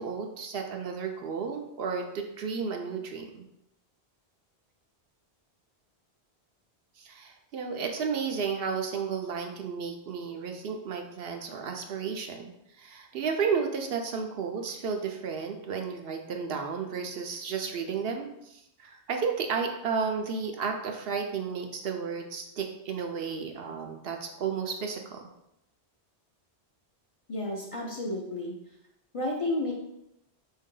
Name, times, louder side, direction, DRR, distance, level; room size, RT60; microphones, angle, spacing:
voice 1, 0.0-3.4 7.0-12.5 12.8-25.3, right 6 dB, 65° right, 3 dB, 0.7 m, -33 dB
voice 2, 27.3-28.6 29.1-29.7, left 1 dB, 40° left, -2 dB, 0.6 m, -31 dB
4.3 x 2.7 x 3.7 m, 0.83 s
omnidirectional pair, 1.1 m